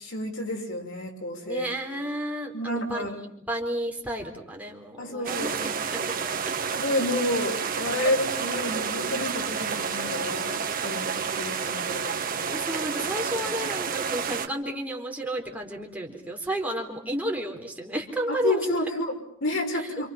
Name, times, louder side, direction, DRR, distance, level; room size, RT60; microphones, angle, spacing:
voice 1, 0.0-2.0 2.5-3.2 5.0-6.1 6.8-12.5 12.9-13.0 18.3-20.1, left 1 dB, 85° left, 2 dB, 6.1 m, -30 dB
voice 2, 1.5-3.1 3.5-6.2 12.5-18.7, right 1 dB, 10° right, 1 dB, 4.1 m, -32 dB
sound 1, 5.2-14.5, right 6 dB, 45° right, 1.4 m, -30 dB
29.0 x 28.0 x 5.9 m, 0.69 s
head